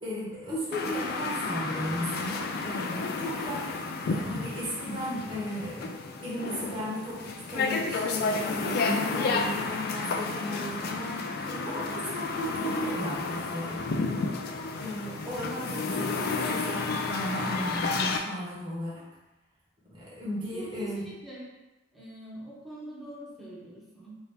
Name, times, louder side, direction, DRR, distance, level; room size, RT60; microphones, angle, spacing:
voice 1, 0.0-3.7 4.1-5.9 6.2-13.8 14.3-14.5 14.8-19.0 19.9-21.0, equal, 25° right, -8 dB, 1.0 m, -35 dB
sound 1, 0.7-18.2, left 4 dB, 50° left, 0.3 m, -31 dB
voice 2, 15.6-16.2 20.5-21.5 21.9-24.2, right 1 dB, ahead, -8 dB, 0.9 m, -44 dB
2.7 x 2.6 x 3.4 m, 1.0 s
head